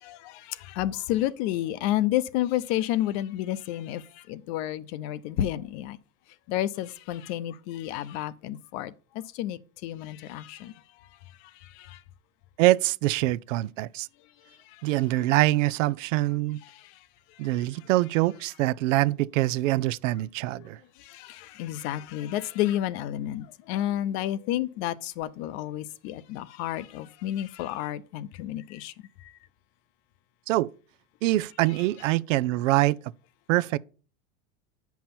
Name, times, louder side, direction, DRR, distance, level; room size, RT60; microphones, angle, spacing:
voice 1, 0.0-6.0 6.5-10.7 11.6-12.0 14.7-14.8 16.6-16.9 17.6-17.7 20.5-20.7 21.0-28.9 29.2-29.3, left 13 dB, 55° left, 0.8 m, -31 dB
voice 2, 12.6-14.1 14.8-16.6 17.4-20.8 30.5-30.7 31.2-33.0 33.5-33.8, right 17 dB, 80° right, 0.6 m, -24 dB
9.2 x 5.8 x 4.3 m
supercardioid pair, 140°, 37 cm